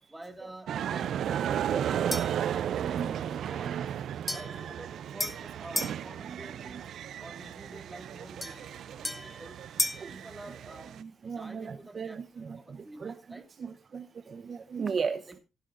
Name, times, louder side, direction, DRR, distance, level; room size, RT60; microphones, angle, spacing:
voice 1, 0.1-3.8 4.3-6.9 7.2-9.6 10.1-10.9 11.4-12.2 12.7-13.5 15.3-15.4, right 2 dB, 10° right, 2.1 m, -48 dB
sound 1, 0.7-11.0, right 10 dB, 70° right, 0.5 m, -34 dB
voice 2, 0.9-2.2 2.6-3.8 6.2-6.8 10.0-10.2 11.0-15.4, right 5 dB, 45° right, 0.9 m, -38 dB
sound 2, 2.1-2.5 4.3-6.0 8.4-10.1, left 1 dB, 15° left, 1.3 m, -35 dB
16.5 x 11.0 x 2.6 m
cardioid pair, 90°, 0 cm